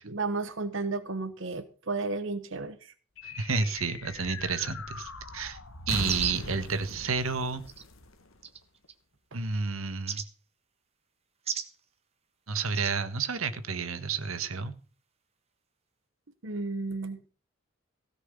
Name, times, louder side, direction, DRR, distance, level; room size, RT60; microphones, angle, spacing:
voice 1, 0.0-2.9 9.3-9.4 16.4-17.3, right 3 dB, 65° right, 9 dB, 1.2 m, -33 dB
sound 1, 3.2-8.9, left 3 dB, 80° left, 1.6 m, -41 dB
voice 2, 3.2-5.6 5.9-7.6 9.3-10.2 12.5-14.7, right 4 dB, 90° right, 10 dB, 1.5 m, -30 dB
sound 2, 6.0-6.5 7.7-7.8 8.4-8.9 10.1-10.3 11.4-11.7 12.7-12.9, right 7 dB, 30° right, 1.4 m, -34 dB
16.5 x 6.1 x 8.2 m, 0.38 s
head